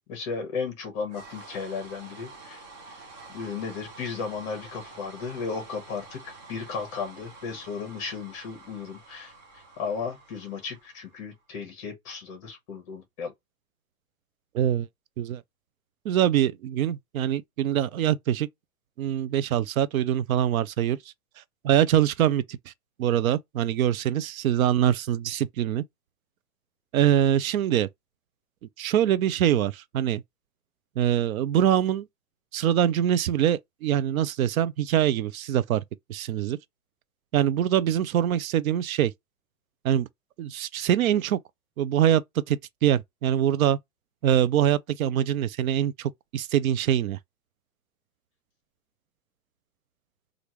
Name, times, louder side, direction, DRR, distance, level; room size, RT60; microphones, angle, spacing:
voice 1, 0.1-2.6 2.9-3.0 3.3-13.3, left 5 dB, 25° left, 1.0 m, -35 dB
sound 1, 1.1-11.4, right 3 dB, 30° right, 0.8 m, -48 dB
voice 2, 14.5-14.9 15.2-15.4 16.0-18.5 19.0-21.0 21.6-22.7 23.0-25.8 26.9-27.9 28.8-30.2 31.0-32.1 32.5-35.8 36.1-36.6 37.3-39.1 39.8-40.1 40.4-41.4 41.8-42.2 42.5-43.8 44.2-47.2, right 10 dB, 85° right, 0.5 m, -24 dB
3.3 x 2.5 x 2.9 m
hypercardioid pair, 175°, 41 cm